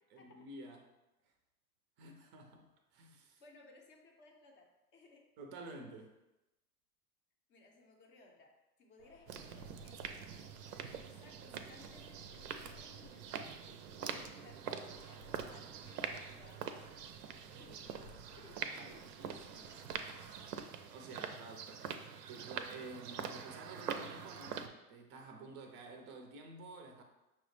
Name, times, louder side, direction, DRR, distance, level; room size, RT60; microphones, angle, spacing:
voice 1, 0.1-0.9 2.0-3.4 5.4-6.1 18.8-20.5 20.9-22.0 22.3-27.0, right 2 dB, 25° right, 4 dB, 0.5 m, -51 dB
voice 2, 3.4-5.2 7.5-8.5 8.8-13.3 14.0-16.8 17.5-18.1 18.4-19.2, left 3 dB, 25° left, 1 dB, 0.5 m, -61 dB
Wind, 9.0-20.6, left 2 dB, 90° left, 0.8 m, -61 dB
sound 1, 9.3-24.7, right 7 dB, 80° right, 0.5 m, -45 dB
5.7 x 2.0 x 3.1 m, 0.97 s
hypercardioid pair, 110°, 47 cm